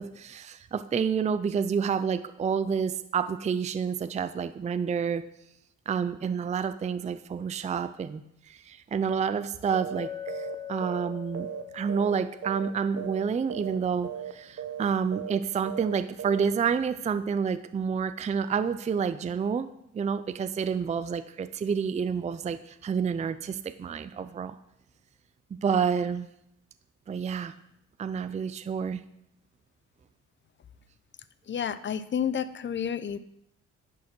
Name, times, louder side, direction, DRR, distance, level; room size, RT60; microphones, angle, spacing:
voice 1, 0.0-5.3 5.9-11.5 11.7-19.7 19.9-24.6 25.5-26.3 27.1-27.5 28.0-29.0, right 6 dB, 25° right, 11 dB, 0.4 m, -29 dB
sound 1, 9.7-10.0 10.3-10.5 10.8-12.2 12.4-12.7 13.0-13.2 13.5-13.8 14.0-14.3 14.6-14.9 15.1-15.4 15.6-15.9 16.2-16.5, right 9 dB, 50° right, 0.9 m, -36 dB
Chink clink, 10.0-14.0, left 10 dB, 15° left, 1.0 m, -42 dB
voice 2, 31.5-33.2, left 8 dB, 40° left, 15 dB, 0.6 m, -30 dB
10.5 x 4.7 x 6.1 m, 0.79 s
cardioid pair, 90°, 30 cm